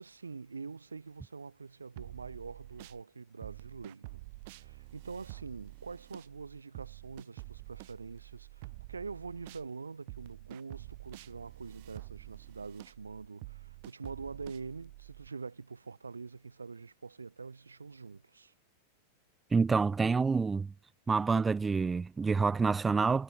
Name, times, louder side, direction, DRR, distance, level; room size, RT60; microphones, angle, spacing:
voice 1, 0.0-4.3 4.5-18.5, right 4 dB, 75° right, 4.4 m, -45 dB
sound 1, 2.0-3.0 3.4-9.7 10.1-15.3, right 23 dB, 50° right, 4.1 m, -48 dB
voice 2, 19.5-20.7 21.1-23.2, right 4 dB, 15° right, 0.3 m, -27 dB
figure-of-eight pair, 90°, 0 cm